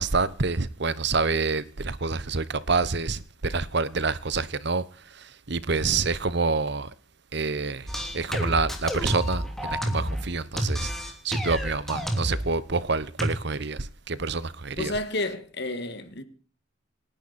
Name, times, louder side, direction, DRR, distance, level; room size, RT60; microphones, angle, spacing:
voice 1, 0.0-6.9 7.3-14.9, right 4 dB, 55° right, 1.0 m, -27 dB
sound 1, 7.9-10.3 10.6-12.5 13.2-13.3, equal, ahead, 3.0 m, -29 dB
voice 2, 14.8-16.2, left 2 dB, 55° left, 2.0 m, -31 dB
28.5 x 10.5 x 4.3 m
head